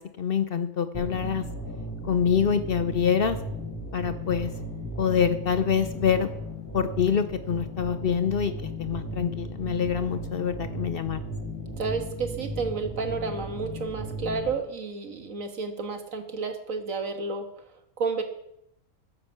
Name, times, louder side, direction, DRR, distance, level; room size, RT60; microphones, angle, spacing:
voice 1, 0.0-1.4 2.0-3.4 3.9-4.5 5.0-6.3 6.7-11.2, left 7 dB, 55° left, 11 dB, 0.7 m, -26 dB
sound 1, 0.9-14.5, equal, 10° left, 3.0 m, -36 dB
voice 2, 11.8-18.2, right 4 dB, 75° right, 5 dB, 2.0 m, -31 dB
9.9 x 9.8 x 7.0 m, 0.78 s
omnidirectional pair, 1.4 m